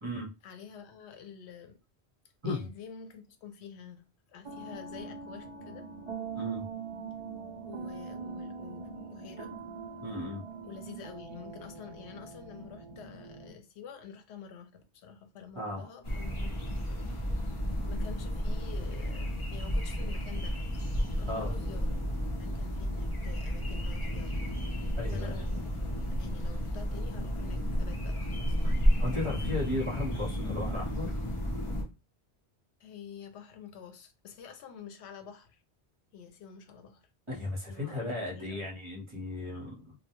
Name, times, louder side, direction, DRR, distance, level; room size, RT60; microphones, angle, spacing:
voice 1, 0.4-1.8 2.4-5.9 7.7-9.5 10.6-17.6 17.9-20.6 21.2-22.1 22.4-24.4 24.8-25.7 26.0-28.6 32.8-35.6 36.1-38.6, left 7 dB, 85° left, 0.8 m, -48 dB
sound 1, 4.4-13.5, right 5 dB, 60° right, 0.3 m, -42 dB
voice 2, 6.3-6.7 10.0-10.4 15.6-15.9 21.3-21.5 25.0-25.4 28.6-28.7 29.0-31.2 37.3-39.9, left 2 dB, 30° right, 0.8 m, -35 dB
sound 2, 16.0-31.8, equal, 35° left, 0.6 m, -32 dB
2.2 x 2.1 x 2.9 m
omnidirectional pair, 1.1 m